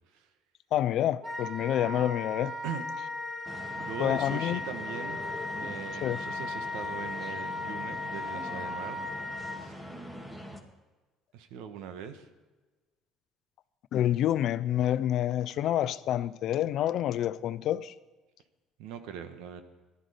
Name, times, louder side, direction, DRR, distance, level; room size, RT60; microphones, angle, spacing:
voice 1, 0.7-2.6 4.0-4.6 6.0-6.2 13.9-17.9, left 11 dB, 65° left, 0.6 m, -28 dB
Wind instrument woodwind instrument, 1.2-9.6, left 2 dB, 35° right, 3.7 m, -36 dB
sound 1, 3.5-10.6, equal, 10° right, 2.2 m, -43 dB
voice 2, 3.8-5.2 5.5-9.7 11.3-12.3 18.8-19.6, right 8 dB, 80° right, 1.3 m, -41 dB
16.0 x 12.0 x 5.1 m
supercardioid pair, 80°, 0 cm